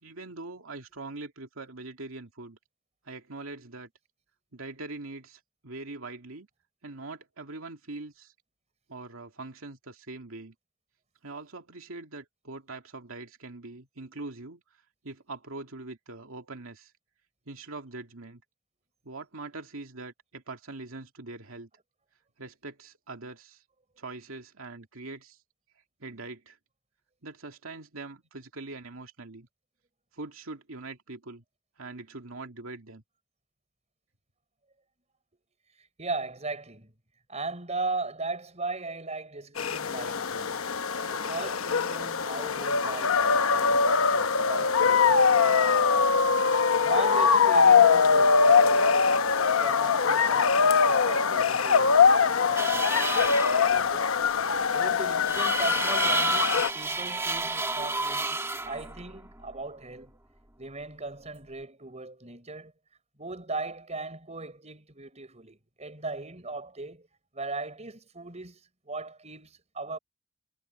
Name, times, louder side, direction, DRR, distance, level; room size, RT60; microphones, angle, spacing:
voice 1, 0.0-2.6 3.0-3.9 4.5-6.5 6.8-8.3 8.9-10.5 11.2-16.9 17.5-18.4 19.0-21.7 22.4-23.6 24.0-25.4 26.0-26.6 27.2-29.5 30.1-31.4 31.8-33.0, right 3 dB, 90° right, 2.4 m, -42 dB
voice 2, 36.0-36.9 37.3-40.6 40.9-46.1 46.8-49.3 49.6-54.1 54.7-60.1 60.6-62.7 63.2-67.1 67.3-68.6 68.9-70.0, right 3 dB, 35° right, 5.8 m, -38 dB
sound 1, 39.6-56.7, left 5 dB, 85° left, 0.9 m, -22 dB
sound 2, 52.6-53.9 55.3-59.5, right 3 dB, 15° right, 2.1 m, -31 dB
head